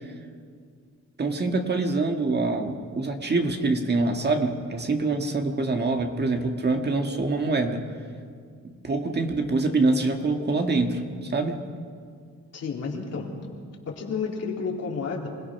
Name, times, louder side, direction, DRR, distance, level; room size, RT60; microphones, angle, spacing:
voice 1, 1.2-7.8 8.6-11.0 11.3-11.6, right 3 dB, 35° right, 4 dB, 1.9 m, -25 dB
voice 2, 12.5-13.3 13.9-15.3, left 5 dB, 55° left, -1 dB, 3.6 m, -31 dB
26.0 x 17.0 x 6.0 m, 2.1 s
cardioid pair, 90°, 30 cm